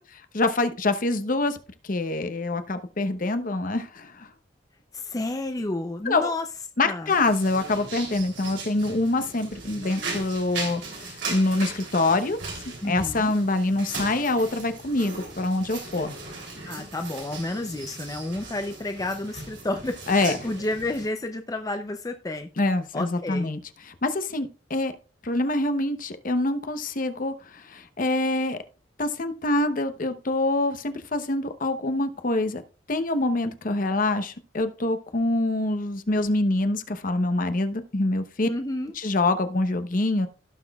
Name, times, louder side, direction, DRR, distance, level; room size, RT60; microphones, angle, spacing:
voice 1, 0.3-1.6 1.8-4.3 6.1-6.3 6.8-12.4 12.8-16.1 20.1-20.4 22.6-23.6 23.9-24.9 25.2-28.6 29.0-32.6 32.9-38.5 39.0-40.3, left 2 dB, 45° left, 9 dB, 0.8 m, -25 dB
voice 2, 4.9-6.5 6.8-7.1 12.8-13.3 16.7-22.5 22.9-23.5 38.4-38.9, left 2 dB, 20° left, 6 dB, 0.5 m, -31 dB
sound 1, 7.1-21.1, right 3 dB, 70° right, 3.2 m, -38 dB
16.5 x 6.0 x 2.3 m, 0.35 s
head